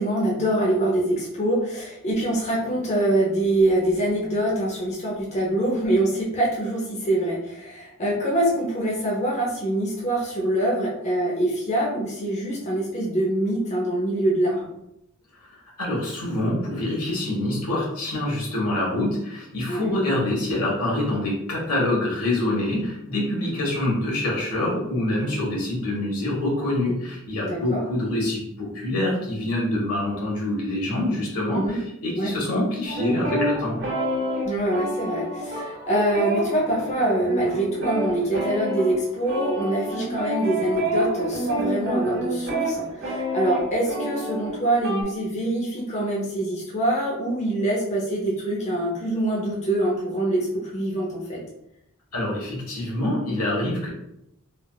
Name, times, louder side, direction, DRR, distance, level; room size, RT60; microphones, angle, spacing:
voice 1, 0.0-14.7 19.7-20.0 27.4-27.8 31.5-31.8 32.2-32.3 34.5-51.4, right 1 dB, 30° left, -4 dB, 0.6 m, -24 dB
voice 2, 15.8-33.8 52.1-53.9, left 1 dB, 80° left, -3 dB, 1.1 m, -25 dB
sound 1, 32.8-45.0, right 1 dB, 60° right, 1.2 m, -28 dB
3.4 x 2.3 x 2.3 m, 0.81 s
head